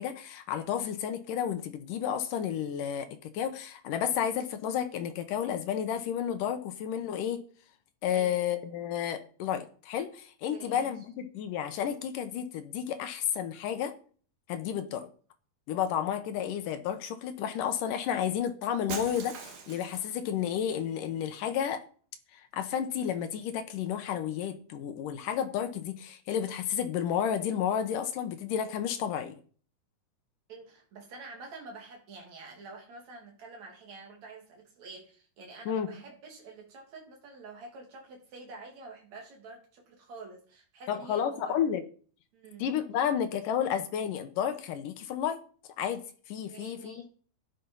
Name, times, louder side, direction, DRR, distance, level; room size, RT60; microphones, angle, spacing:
voice 1, 0.0-7.4 8.0-13.9 14.5-15.1 15.7-21.8 22.3-29.4 35.7-35.9 40.9-41.8 42.6-45.4 45.8-47.0, left 9 dB, 70° left, 2.2 m, -31 dB
voice 2, 10.5-10.9 30.5-41.7 42.3-42.7 46.5-47.0, right 3 dB, 45° right, 3.9 m, -48 dB
Shatter, 18.9-20.2, right 6 dB, 65° right, 3.6 m, -40 dB
12.5 x 10.0 x 5.5 m
omnidirectional pair, 4.6 m